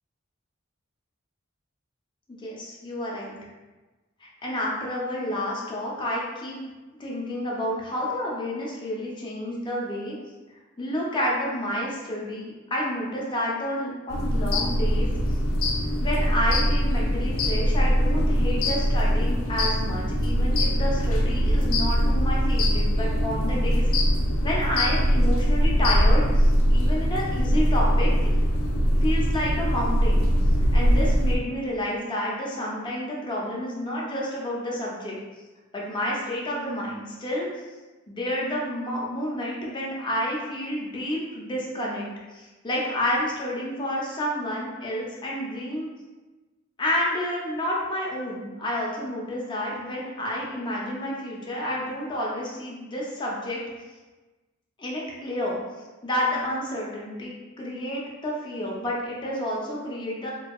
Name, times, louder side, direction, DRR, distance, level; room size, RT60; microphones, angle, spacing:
voice 1, 2.3-3.3 4.2-6.6 7.0-10.2 10.8-15.4 16.0-23.8 24.4-28.4 29.0-30.3 30.7-35.2 35.7-37.5 38.1-45.9 46.8-53.6 54.8-55.5 56.0-60.3, equal, 25° left, -4 dB, 0.5 m, -30 dB
sound 1, 14.1-31.4, equal, 90° left, 0.4 m, -22 dB
2.7 x 2.7 x 2.3 m, 1.2 s
head